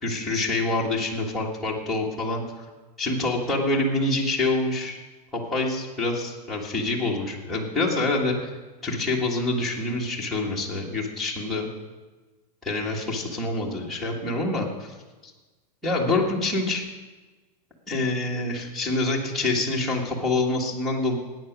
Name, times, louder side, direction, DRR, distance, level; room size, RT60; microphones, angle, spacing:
voice 1, 0.0-2.6 3.0-5.0 5.3-8.5 8.8-11.7 12.6-15.0 15.2-15.3 15.8-16.8 17.9-21.2, left 2 dB, ahead, -6 dB, 1.7 m, -26 dB
13.0 x 9.3 x 6.0 m, 1.3 s
supercardioid pair, 170°, 20 cm